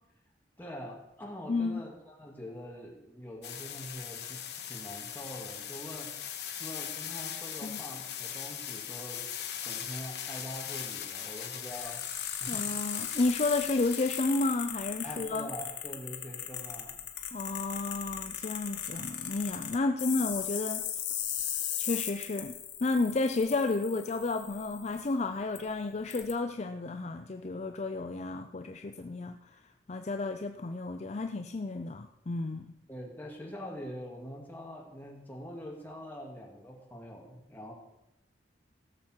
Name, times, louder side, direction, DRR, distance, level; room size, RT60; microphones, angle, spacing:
voice 1, 0.6-6.1 6.6-9.3 9.6-12.0 12.4-12.6 15.0-16.9 32.9-37.7, equal, 10° left, -2 dB, 2.2 m, -44 dB
voice 2, 1.5-1.8 7.6-7.8 12.5-15.5 17.3-20.9 21.8-22.6 22.8-29.6 29.9-32.8, left 3 dB, 40° left, 6 dB, 0.5 m, -32 dB
sound 1, 3.4-14.2, left 9 dB, 65° left, 1.3 m, -40 dB
sound 2, 11.7-25.1 25.6-25.7 26.1-26.3, left 9 dB, 85° left, 1.6 m, -38 dB
17.0 x 7.3 x 4.5 m, 0.91 s
head